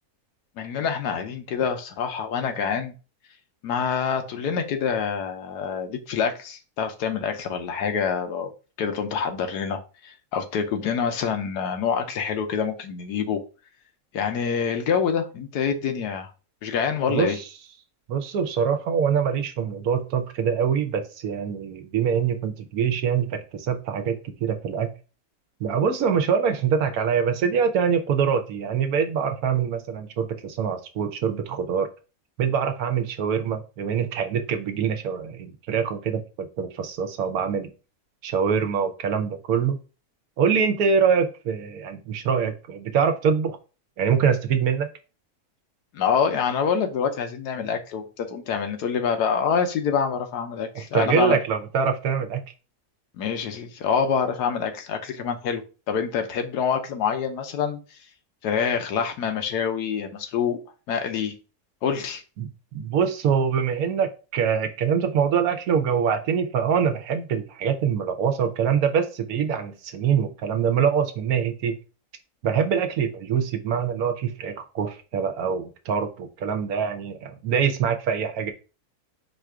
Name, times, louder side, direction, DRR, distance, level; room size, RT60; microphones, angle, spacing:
voice 1, 0.6-2.9 3.6-8.5 8.8-13.4 14.1-16.3 16.6-17.4 45.9-51.4 53.2-57.8 58.4-60.6 60.9-61.3 61.8-62.2, left 6 dB, 85° left, 6 dB, 1.3 m, -26 dB
voice 2, 18.1-24.9 25.6-31.9 32.4-37.7 38.2-39.8 40.4-43.6 44.0-44.9 50.7-52.4 62.4-71.7 72.4-78.5, right 7 dB, 70° right, 7 dB, 1.1 m, -24 dB
4.7 x 2.5 x 4.6 m, 0.33 s
omnidirectional pair, 1.7 m